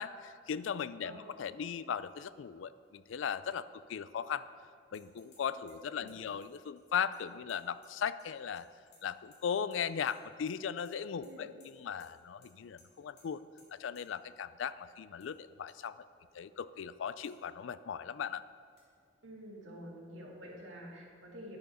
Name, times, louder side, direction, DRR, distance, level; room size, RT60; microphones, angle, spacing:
voice 1, 0.0-4.4 4.9-8.7 9.0-13.4 13.7-16.1 16.3-18.4, left 7 dB, 75° left, 15 dB, 0.4 m, -38 dB
sound 1, 4.9-5.4 5.7-8.3 8.6-9.4 9.7-10.6 10.8-11.3 11.6-11.7 12.0-12.1 12.4-12.5 12.8-12.9 13.2-13.3 13.6-13.7 13.9-14.0 14.9-15.3 15.7-15.8 16.3-16.4 17.2-17.4 18.8-18.9, left 3 dB, 55° left, 2.4 m, -64 dB
voice 2, 5.5-6.2 11.2-11.5 19.2-21.6, equal, 75° right, -2 dB, 2.1 m, -49 dB
10.5 x 6.9 x 5.5 m, 2.3 s
head